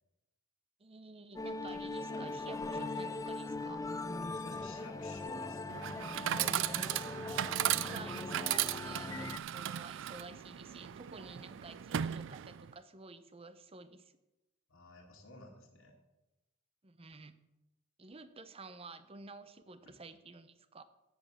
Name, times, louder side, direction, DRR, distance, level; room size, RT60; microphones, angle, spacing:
voice 1, 0.8-3.9 6.3-7.0 7.6-14.1 16.8-17.4 18.0-20.8, right 3 dB, 25° right, 12 dB, 0.6 m, -51 dB
sound 1, 1.3-9.4, left 2 dB, 15° left, 0.4 m, -40 dB
voice 2, 4.2-5.9 14.7-15.9, left 2 dB, 60° left, -1 dB, 1.8 m, -53 dB
Chatter / Coin (dropping), 5.7-12.7, right 11 dB, 60° right, 0.3 m, -36 dB
8.8 x 8.4 x 7.3 m, 0.99 s
head